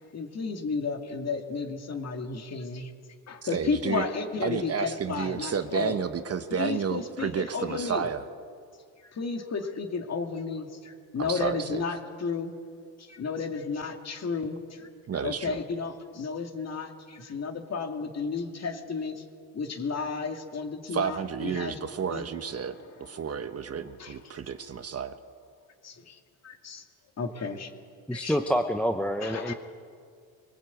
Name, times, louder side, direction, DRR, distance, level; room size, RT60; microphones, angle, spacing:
voice 1, 0.1-2.9 3.3-6.0 6.5-8.0 9.1-12.5 13.0-14.9 15.2-19.2 19.5-21.8 22.1-22.2 24.0-24.2 25.8-26.8 27.2-27.7 28.1-28.4 29.2-29.5, left 5 dB, 35° left, 5 dB, 2.5 m, -33 dB
voice 2, 3.4-4.1 4.4-8.3 11.2-11.8 15.1-15.6 20.9-25.2, right 7 dB, 35° right, 10 dB, 1.1 m, -31 dB
voice 3, 28.1-29.5, equal, 5° left, 6 dB, 0.9 m, -27 dB
23.0 x 19.0 x 8.4 m, 2.2 s
cardioid pair, 100°, 42 cm